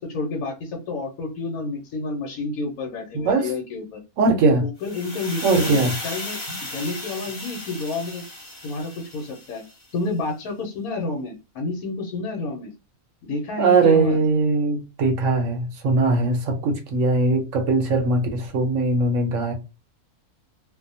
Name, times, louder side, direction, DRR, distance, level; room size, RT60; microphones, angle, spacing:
voice 1, 0.0-4.0 4.6-5.8 6.0-6.4 6.7-8.2 8.6-9.6 9.9-12.7 13.2-14.2, left 3 dB, 80° left, 1.2 m, -30 dB
voice 2, 3.1-3.5 4.2-4.6 5.4-5.9 13.6-19.5, right 3 dB, 70° right, 0.9 m, -20 dB
sound 1, 4.8-9.8, left 2 dB, 40° left, 1.2 m, -35 dB
2.7 x 2.0 x 2.6 m
omnidirectional pair, 1.6 m